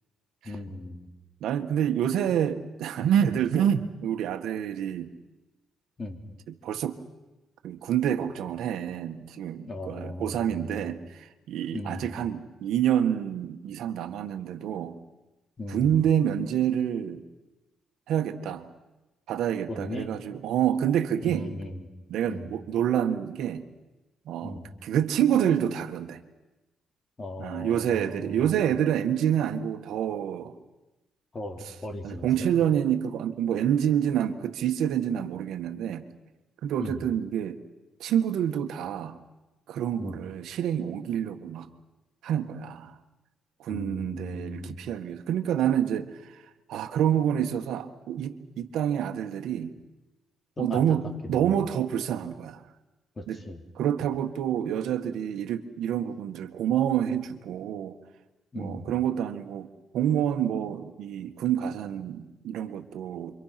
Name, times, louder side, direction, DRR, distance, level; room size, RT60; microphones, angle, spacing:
voice 1, 0.4-1.1 6.0-6.2 9.6-11.0 11.7-12.1 15.6-16.0 19.7-20.1 21.2-21.9 22.3-22.5 24.4-24.7 27.2-28.5 31.3-32.5 36.8-37.0 40.0-40.2 43.7-44.8 50.6-50.8 51.2-51.5 53.2-53.6 58.5-58.9, left 2 dB, 30° left, 4 dB, 3.5 m, -38 dB
voice 2, 1.4-5.1 6.5-7.0 7.6-15.0 15.7-17.2 18.1-18.7 19.3-21.5 22.1-23.7 24.2-26.2 27.4-30.5 32.0-36.1 36.6-37.6 38.0-39.2 39.7-41.7 42.2-42.9 43.6-46.4 46.7-49.7 50.6-52.6 53.3-53.4 53.7-58.0 58.5-59.7 59.9-63.4, right 9 dB, 80° right, 7 dB, 1.6 m, -27 dB
28.5 x 24.5 x 6.0 m, 1.1 s
cardioid pair, 90°, 0 cm